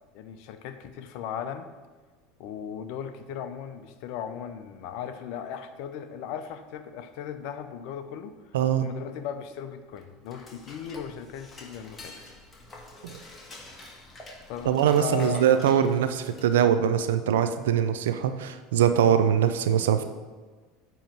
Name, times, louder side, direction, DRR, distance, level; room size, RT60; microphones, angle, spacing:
voice 1, 0.1-1.7 2.4-8.5 8.8-12.1 14.5-15.4, left 8 dB, 65° left, 9 dB, 0.6 m, -37 dB
voice 2, 8.5-8.9 13.0-13.1 14.6-20.0, right 9 dB, 75° right, 10 dB, 0.5 m, -22 dB
Dishes pots and pans / Cutlery silverware, 9.9-16.8, left 2 dB, 25° left, 1.4 m, -47 dB
8.7 x 3.1 x 5.9 m, 1.4 s
hypercardioid pair, 80°, 0 cm